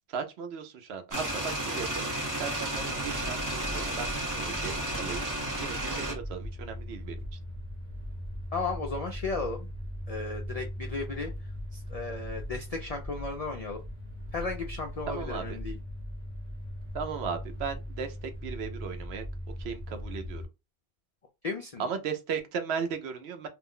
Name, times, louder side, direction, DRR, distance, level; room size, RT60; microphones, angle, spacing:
voice 1, 0.1-5.3 5.6-7.4 15.1-15.6 16.9-19.3 19.6-20.4 21.8-23.5, right 6 dB, 90° right, 0.9 m, -36 dB
sound 1, 1.1-6.1, right 1 dB, 20° right, 0.8 m, -32 dB
sound 2, 2.7-20.5, equal, 45° right, 0.9 m, -39 dB
voice 2, 8.5-9.7 10.1-11.3 11.7-13.8 14.3-15.8 21.4-21.8, left 3 dB, 50° left, 0.5 m, -35 dB
2.5 x 2.1 x 3.6 m
omnidirectional pair, 1.1 m